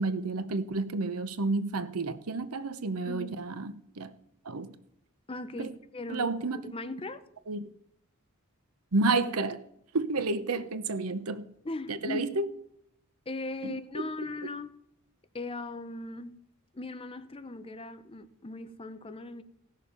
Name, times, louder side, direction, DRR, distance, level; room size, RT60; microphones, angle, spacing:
voice 1, 0.0-4.1 4.4-4.8 5.6-5.7 6.1-6.7 7.5-7.7 8.9-9.6 9.9-11.5 11.9-12.5 13.6-14.1, right 3 dB, 80° right, 0.9 m, -30 dB
voice 2, 5.3-6.3 6.6-7.2 10.6-10.7 11.6-12.3 13.3-14.7 15.3-16.4 16.7-19.4, left 2 dB, 25° left, 0.7 m, -38 dB
16.5 x 6.7 x 5.3 m
head